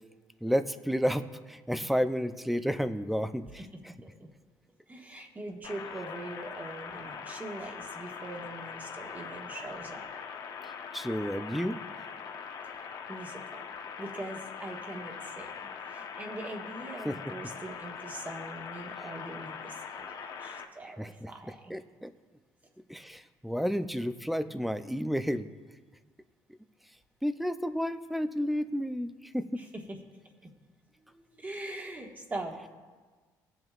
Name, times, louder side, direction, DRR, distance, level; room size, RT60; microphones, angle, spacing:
voice 1, 0.4-3.6 10.6-11.8 17.1-17.2 21.0-21.3 21.7-22.1 22.9-25.5 27.2-29.6, equal, ahead, 11 dB, 0.5 m, -31 dB
voice 2, 4.9-10.0 13.1-13.6 14.0-21.7 29.5-30.0 31.1-32.7, right 2 dB, 20° right, 1 dB, 1.5 m, -42 dB
sound 1, 5.6-20.6, left 6 dB, 65° left, 1.1 m, -42 dB
19.5 x 7.7 x 2.5 m, 1.4 s
cardioid pair, 100°, 8 cm